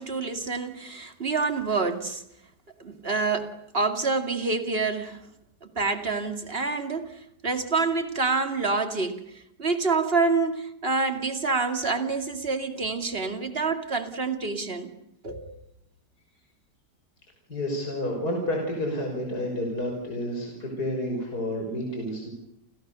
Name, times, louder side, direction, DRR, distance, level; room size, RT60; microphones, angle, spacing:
voice 1, 0.0-2.2 2.8-5.3 5.6-14.9 15.2-15.6, right 4 dB, 35° right, 2.6 m, -27 dB
voice 2, 17.5-22.3, left 1 dB, 60° left, 6.4 m, -30 dB
29.5 x 29.0 x 7.0 m
omnidirectional pair, 1.9 m